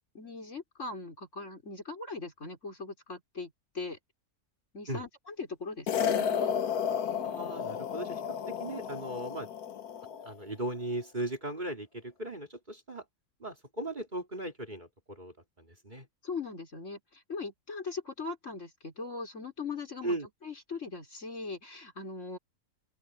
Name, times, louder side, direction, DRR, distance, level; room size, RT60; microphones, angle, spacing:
voice 1, 0.1-4.0 4.7-6.7 16.2-22.4, left 4 dB, 55° left, 4.9 m, -40 dB
sound 1, 5.9-10.3, left 8 dB, 85° left, 1.5 m, -32 dB
voice 2, 7.2-9.5 10.2-13.0 13.4-16.1 20.0-20.3, right 1 dB, 30° right, 3.2 m, -38 dB
open air
omnidirectional pair, 1.6 m